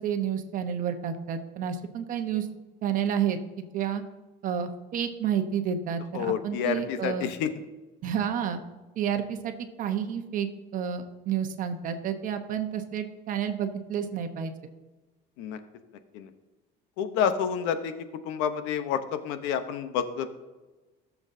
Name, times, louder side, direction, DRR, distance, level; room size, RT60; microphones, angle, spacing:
voice 1, 0.0-2.5 2.8-4.0 4.4-7.3 8.0-8.6 9.0-14.5, right 8 dB, 45° right, 7 dB, 1.0 m, -30 dB
voice 2, 6.1-7.5 15.4-15.6 16.1-16.3 17.0-17.9 18.2-20.3, left 8 dB, 85° left, 10 dB, 0.9 m, -29 dB
17.0 x 7.2 x 2.7 m, 1.2 s
cardioid pair, 145°, 18 cm